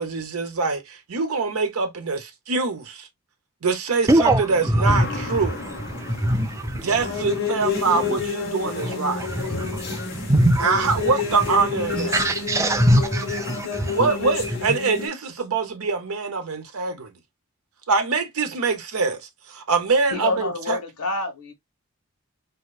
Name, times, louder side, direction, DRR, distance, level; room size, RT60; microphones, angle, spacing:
voice 1, 0.0-3.1 3.6-5.6 6.8-9.2 10.6-12.2 13.9-17.1 17.9-19.2 19.5-20.8, right 4 dB, 75° right, 0.8 m, -24 dB
voice 2, 4.1-7.4 7.7-8.3 8.8-11.1 11.9-14.1 14.4-14.8, right 1 dB, 15° right, 0.3 m, -23 dB
sound 1, 4.8-15.1, left 6 dB, 45° left, 1.2 m, -30 dB
voice 3, 20.1-21.5, left 3 dB, 90° left, 1.2 m, -27 dB
3.6 x 2.9 x 2.3 m
head